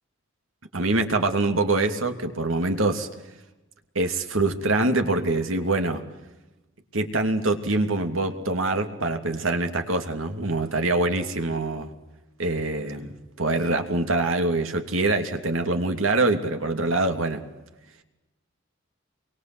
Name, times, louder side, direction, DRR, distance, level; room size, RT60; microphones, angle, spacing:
voice 1, 0.7-3.1 3.9-6.0 6.9-11.9 12.4-13.1 13.4-17.4, right 2 dB, 75° right, 6 dB, 2.9 m, -24 dB
29.0 x 23.5 x 8.0 m, 1.0 s
head